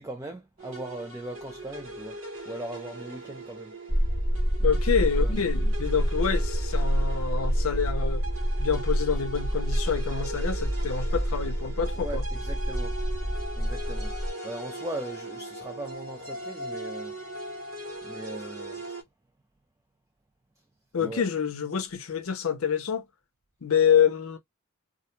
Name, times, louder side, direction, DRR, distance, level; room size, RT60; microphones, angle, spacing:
voice 1, 0.0-2.2 2.5-4.0 5.2-5.4 11.6-13.0 13.6-14.1 14.4-17.2 18.0-18.8 21.0-21.2, right 2 dB, 15° right, 0.3 m, -39 dB
sound 1, 0.6-19.0, right 2 dB, 70° right, 1.1 m, -40 dB
sound 2, 3.9-14.3, equal, ahead, 0.9 m, -27 dB
voice 2, 4.6-8.2 8.6-12.2 20.9-23.0 23.6-24.4, left 7 dB, 80° left, 0.6 m, -27 dB
2.4 x 2.2 x 2.9 m
head